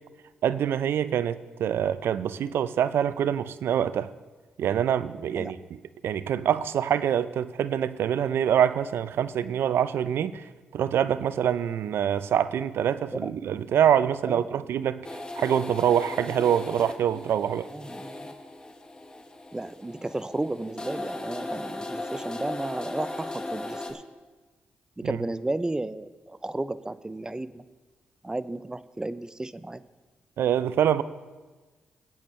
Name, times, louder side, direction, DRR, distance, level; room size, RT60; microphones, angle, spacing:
voice 1, 0.4-4.1 4.6-5.6 6.0-15.1 15.4-17.7 25.0-25.2 30.4-31.0, right 9 dB, 75° right, 15 dB, 0.4 m, -25 dB
voice 2, 14.3-14.6 17.7-18.3 19.5-24.0 25.0-27.6 28.2-29.8, right 2 dB, 20° right, 15 dB, 0.5 m, -33 dB
sound 1, 15.0-23.9, left 2 dB, 20° left, 1.3 m, -37 dB
17.5 x 8.5 x 3.2 m, 1.3 s
supercardioid pair, 55°, 4 cm